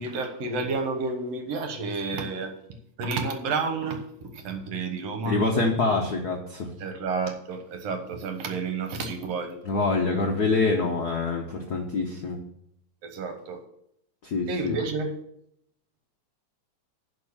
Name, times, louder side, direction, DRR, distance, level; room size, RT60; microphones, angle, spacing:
voice 1, 0.0-2.5 3.0-5.4 6.8-9.6 13.0-13.6 14.5-15.1, right 4 dB, 65° right, 6 dB, 2.1 m, -30 dB
voice 2, 5.2-6.7 9.6-12.4 14.2-14.8, left 3 dB, 85° left, 1 dB, 0.8 m, -25 dB
11.0 x 4.6 x 7.1 m, 0.73 s
omnidirectional pair, 3.3 m